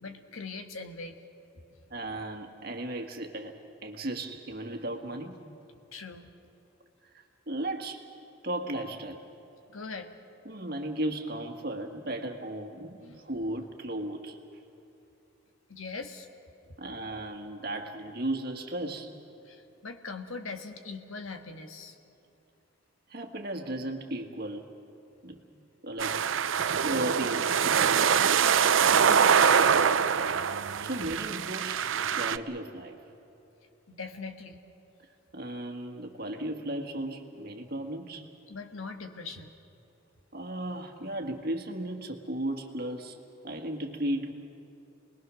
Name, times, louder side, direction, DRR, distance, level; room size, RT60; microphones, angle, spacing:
voice 1, 0.0-1.2 5.9-6.3 9.7-10.1 13.0-13.2 15.7-16.3 19.4-22.0 26.7-26.9 29.0-29.9 33.9-34.6 38.5-39.5, left 4 dB, 90° left, 5 dB, 1.5 m, -41 dB
voice 2, 1.9-3.5 3.8-5.3 7.5-8.1 8.4-9.2 10.5-14.4 16.8-19.1 23.1-24.6 25.2-25.4 25.8-26.2 26.8-27.9 30.8-31.8 32.2-33.0 35.3-38.3 40.3-43.2 43.4-44.3, right 1 dB, 50° right, 4 dB, 1.8 m, -35 dB
sound 1, 26.0-32.4, right 7 dB, 70° right, 0.6 m, -24 dB
28.5 x 21.0 x 6.3 m, 2.9 s
head